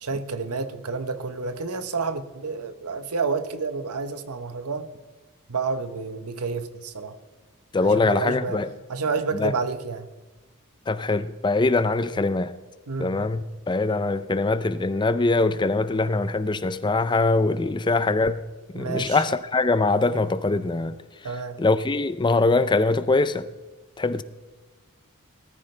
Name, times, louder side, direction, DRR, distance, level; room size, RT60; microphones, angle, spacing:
voice 1, 0.0-4.9 5.5-7.2 7.8-8.6 8.9-10.1 12.9-13.3 18.7-19.2 21.2-21.6, right 4 dB, 85° right, 1.0 m, -29 dB
voice 2, 7.7-8.7 9.4-9.5 10.9-12.5 13.0-18.4 18.7-20.9 21.6-23.4 24.0-24.2, left 3 dB, 20° left, 0.5 m, -22 dB
19.0 x 13.5 x 3.3 m
head